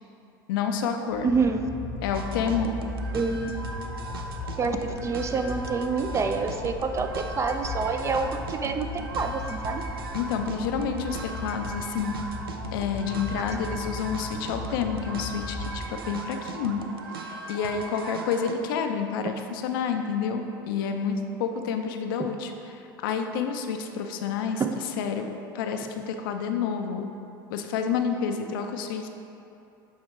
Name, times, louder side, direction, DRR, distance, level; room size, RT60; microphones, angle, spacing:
voice 1, 0.5-1.3 2.0-2.8 10.1-12.1 12.7-16.8 17.1-24.6 25.0-27.1 27.5-29.1, left 6 dB, 70° left, 5 dB, 0.5 m, -29 dB
sound 1, 1.1-16.4, left 2 dB, ahead, 0.9 m, -37 dB
voice 2, 1.2-1.6 3.1-3.5 4.6-8.9 9.1-9.8 24.6-24.7, right 4 dB, 25° right, 6 dB, 0.4 m, -27 dB
sound 2, 2.1-18.5, right 3 dB, 85° right, 0.4 m, -39 dB
8.0 x 2.8 x 4.6 m, 2.8 s
hypercardioid pair, 80°, 12 cm